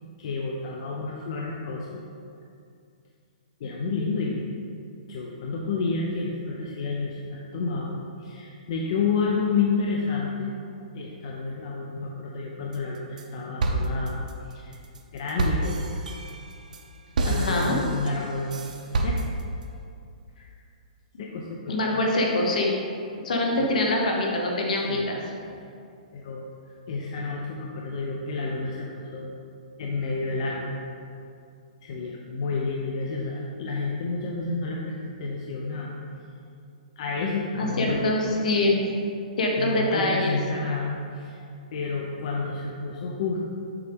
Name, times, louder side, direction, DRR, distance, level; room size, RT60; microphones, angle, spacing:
voice 1, 0.2-2.0 3.6-4.4 5.1-10.5 10.9-14.2 14.5-14.8 15.1-16.0 17.2-18.5 18.9-19.2 21.2-22.2 23.5-23.7 24.8-25.1 25.6-25.7 26.1-26.5 26.9-29.3 29.8-30.8 31.8-35.9 37.0-38.4 39.6-41.4 41.7-43.5, left 4 dB, 45° left, -1 dB, 0.6 m, -30 dB
sound 1, 12.7-13.3 13.6-19.6, right 2 dB, 75° right, 0.7 m, -29 dB
voice 2, 17.3-17.8 21.7-22.7 23.2-25.2 37.6-38.8 39.4-40.4, left 1 dB, 70° left, 0 dB, 1.3 m, -24 dB
6.7 x 4.6 x 3.6 m, 2.4 s
hypercardioid pair, 165°, 4 cm